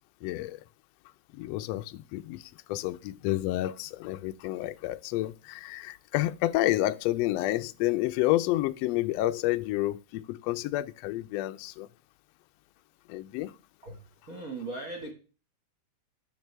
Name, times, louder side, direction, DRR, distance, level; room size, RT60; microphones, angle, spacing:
voice 1, 0.2-0.6 1.3-11.9 13.1-13.5, left 16 dB, 85° left, 1.4 m, -30 dB
voice 2, 13.8-15.1, right 2 dB, 40° right, 1.5 m, -39 dB
10.5 x 6.6 x 3.3 m
omnidirectional pair, 3.4 m